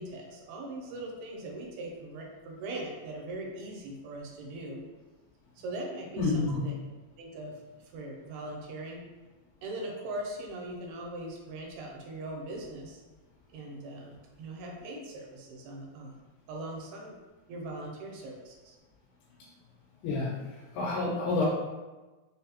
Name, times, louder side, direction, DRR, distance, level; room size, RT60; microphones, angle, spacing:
voice 1, 0.0-4.8 5.6-6.7 7.2-7.6 7.9-9.0 9.6-13.0 13.5-16.2 16.5-17.2 17.5-18.8, right 1 dB, 90° right, -1 dB, 2.6 m, -40 dB
voice 2, 6.2-6.6 20.0-20.4 20.7-21.5, left 3 dB, 90° left, -6 dB, 2.5 m, -28 dB
6.1 x 2.0 x 2.8 m, 1.2 s
omnidirectional pair, 4.3 m